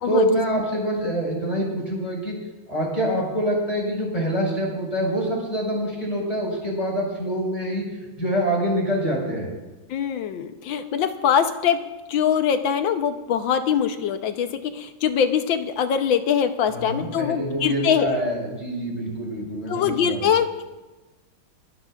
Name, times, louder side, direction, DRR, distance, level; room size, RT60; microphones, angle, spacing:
voice 1, 0.0-2.4 2.7-7.8 8.2-9.5 16.7-20.3, right 1 dB, 20° left, -3 dB, 5.2 m, -25 dB
voice 2, 9.9-11.8 12.1-18.2 19.7-20.6, left 8 dB, 75° left, 8 dB, 1.6 m, -23 dB
30.0 x 12.0 x 2.5 m, 1.1 s
omnidirectional pair, 2.2 m